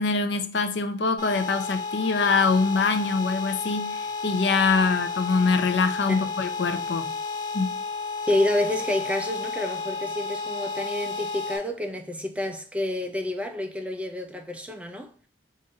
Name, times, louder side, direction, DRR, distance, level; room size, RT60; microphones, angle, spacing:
voice 1, 0.0-7.2 7.5-7.7, left 4 dB, 70° left, 0.6 m, -24 dB
sound 1, 1.2-11.6, left 4 dB, 25° left, 1.2 m, -32 dB
voice 2, 8.3-15.1, left 1 dB, 5° right, 0.5 m, -28 dB
5.1 x 2.7 x 3.8 m
head